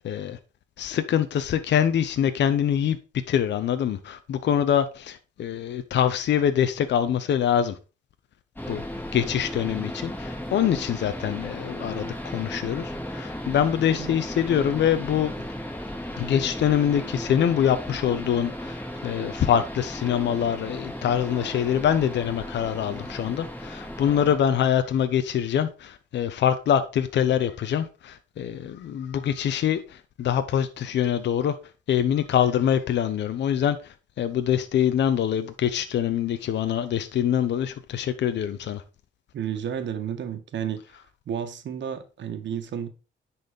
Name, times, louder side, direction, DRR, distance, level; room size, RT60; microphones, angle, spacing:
voice 1, 0.0-0.4 0.8-3.0 3.3-7.7 8.7-8.8 9.1-15.3 16.2-31.5 31.9-33.8 34.2-38.8, left 9 dB, 65° left, 0.8 m, -24 dB
sound 1, 8.6-24.4, equal, 10° left, 5.3 m, -35 dB
voice 2, 39.3-40.8 41.3-42.9, right 8 dB, 65° right, 1.6 m, -31 dB
10.5 x 4.3 x 5.3 m
cardioid pair, 90°, 20 cm